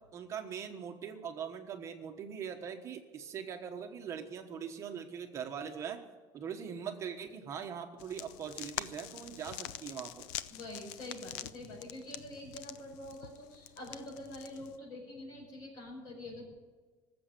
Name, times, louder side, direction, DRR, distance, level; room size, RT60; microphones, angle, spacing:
voice 1, 0.1-6.0 6.3-10.3, right 7 dB, 30° right, 5 dB, 1.2 m, -41 dB
sound 1, 8.0-14.8, left 13 dB, 85° left, 0.7 m, -45 dB
voice 2, 10.5-16.5, left 1 dB, 40° left, -1 dB, 5.6 m, -46 dB
19.5 x 7.9 x 9.0 m, 1.4 s
cardioid pair, 170°, 10 cm